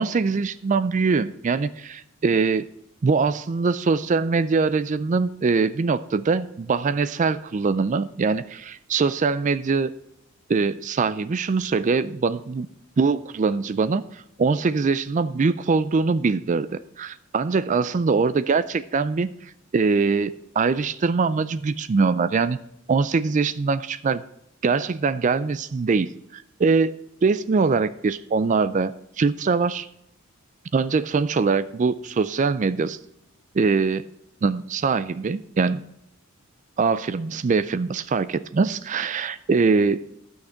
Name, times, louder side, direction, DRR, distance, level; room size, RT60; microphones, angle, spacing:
voice 1, 0.0-2.7 3.0-9.9 10.5-12.7 13.0-22.6 22.9-24.2 24.6-26.9 27.2-29.9 30.7-33.0 33.5-34.0 34.4-35.8 36.8-40.1, right 4 dB, 35° right, 15 dB, 0.3 m, -23 dB
12.5 x 6.5 x 5.7 m, 0.78 s
head